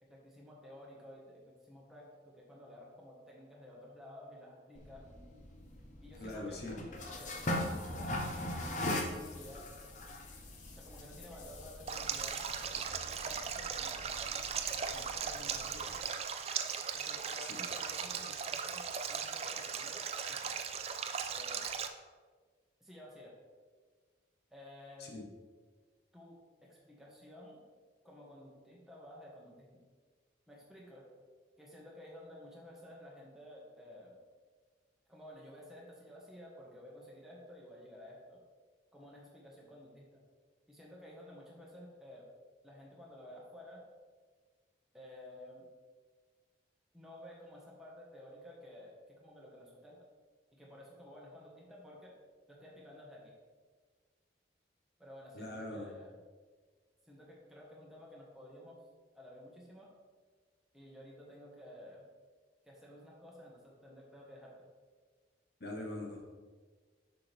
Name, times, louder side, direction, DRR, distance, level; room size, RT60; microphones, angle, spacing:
voice 1, 0.0-5.1 6.0-6.7 7.1-9.7 10.7-12.4 13.2-14.1 14.9-16.0 16.9-20.6 21.3-21.7 22.8-23.4 24.5-25.1 26.1-27.6 28.0-29.8 30.5-31.1 31.6-34.2 35.1-38.4 38.9-40.2 40.7-42.3 42.6-43.8 44.9-45.7 46.9-50.0 50.5-52.2 52.5-53.3 55.0-56.1 57.0-58.8 59.1-59.9 60.7-62.1 62.6-64.7, left 1 dB, ahead, -4 dB, 1.4 m, -53 dB
sound 1, 4.7-16.0, left 1 dB, 40° left, 0.7 m, -41 dB
voice 2, 6.2-6.8 17.4-17.7 25.0-25.2 55.3-55.9 65.6-66.2, left 2 dB, 60° left, 0 dB, 1.3 m, -42 dB
Stream, 11.9-21.9, right 7 dB, 35° right, 0.4 m, -38 dB
6.9 x 6.0 x 3.5 m, 1.5 s
head